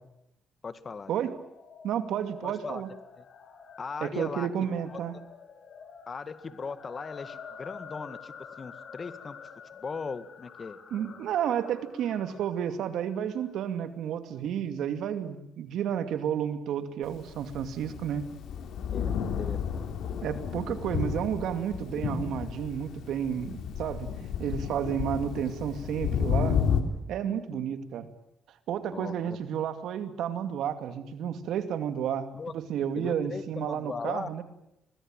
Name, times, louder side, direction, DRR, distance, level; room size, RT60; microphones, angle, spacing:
voice 1, 0.6-1.3 2.4-2.8 3.2-3.3 3.8-4.5 4.9-5.0 6.1-9.4 9.8-10.8 18.9-20.0 27.3-27.8 28.9-29.4 32.3-32.5 33.0-34.3, left 5 dB, 40° left, 13 dB, 1.9 m, -38 dB
sound 1, 1.2-13.6, left 6 dB, 55° left, 4.6 m, -49 dB
voice 2, 1.8-2.9 4.0-5.1 10.9-18.2 20.2-24.1 24.4-26.6 27.1-28.1 28.7-32.3 32.7-34.4, right 9 dB, 80° right, 10 dB, 2.5 m, -31 dB
Thunder, 17.3-26.8, left 7 dB, 80° left, 3.3 m, -32 dB
24.0 x 21.0 x 9.0 m, 0.82 s
cardioid pair, 90°, 0 cm